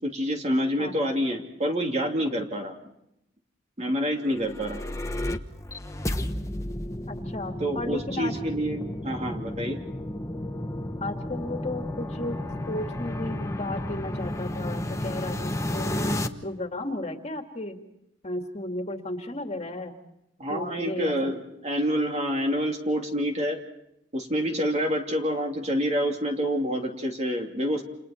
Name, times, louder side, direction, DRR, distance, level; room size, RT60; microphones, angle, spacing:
voice 1, 0.0-2.7 3.8-4.8 7.6-9.8 20.4-23.6 24.1-27.8, equal, 35° right, 2 dB, 2.9 m, -27 dB
sound 1, 4.2-16.3, left 1 dB, 15° left, 1.1 m, -32 dB
voice 2, 7.1-8.3 11.0-12.4 12.7-16.2 16.4-17.8 18.2-19.9 20.5-21.3, left 2 dB, 35° left, 4 dB, 2.2 m, -34 dB
29.5 x 28.5 x 4.4 m, 0.83 s
head